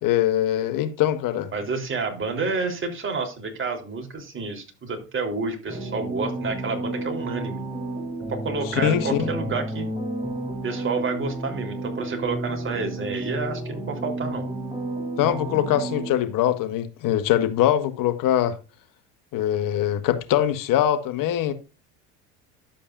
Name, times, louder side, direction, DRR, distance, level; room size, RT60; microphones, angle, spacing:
voice 1, 0.0-1.5 8.7-9.3 15.2-18.6 19.3-21.5, left 11 dB, 55° left, 1.4 m, -22 dB
voice 2, 1.5-7.6 8.3-9.9 10.6-14.4, right 4 dB, 30° right, 3.6 m, -29 dB
sound 1, 5.7-16.1, right 1 dB, 10° right, 3.5 m, -31 dB
11.5 x 8.4 x 2.5 m
supercardioid pair, 90°, 39 cm